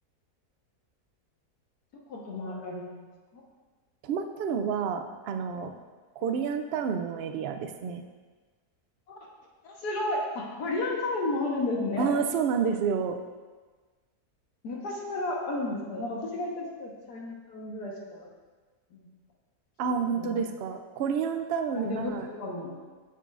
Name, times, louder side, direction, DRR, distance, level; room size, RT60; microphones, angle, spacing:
voice 1, 2.1-3.4 9.1-9.2 9.6-12.1 14.6-18.3 18.9-19.1 19.8-20.5 21.7-22.8, left 2 dB, 90° left, -2 dB, 1.8 m, -33 dB
voice 2, 4.0-5.7 6.2-8.0 12.0-13.2 19.8-22.3, right 6 dB, 80° right, 6 dB, 0.5 m, -29 dB
8.2 x 6.9 x 2.5 m, 1.4 s
omnidirectional pair, 1.7 m